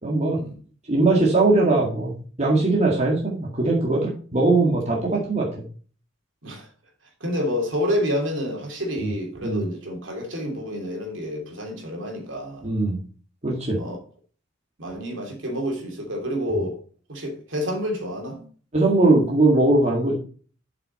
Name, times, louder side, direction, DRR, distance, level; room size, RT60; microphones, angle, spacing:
voice 1, 0.0-0.4 0.9-2.1 2.4-5.5 9.0-9.1 9.4-9.7 12.6-13.0 13.4-13.8 18.7-20.2, right 2 dB, 35° right, 1.9 m, -20 dB
voice 2, 7.2-12.7 13.8-14.0 14.8-16.8 17.1-18.4, equal, 70° right, 2.9 m, -28 dB
7.5 x 6.0 x 4.3 m
head